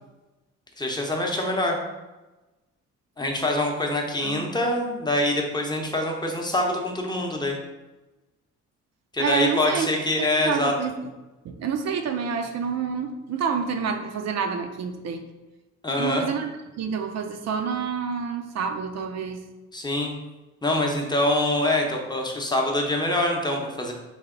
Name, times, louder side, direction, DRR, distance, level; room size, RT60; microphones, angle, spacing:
voice 1, 0.8-1.8 3.2-7.6 9.1-10.7 15.8-16.3 19.7-20.1 20.6-23.9, left 1 dB, 15° left, 1 dB, 0.7 m, -25 dB
voice 2, 9.2-9.9 10.2-11.1 11.4-15.2 16.0-16.5 16.8-19.4, right 6 dB, 60° right, 6 dB, 0.5 m, -28 dB
3.4 x 2.8 x 3.7 m, 1.1 s
cardioid pair, 90°, 30 cm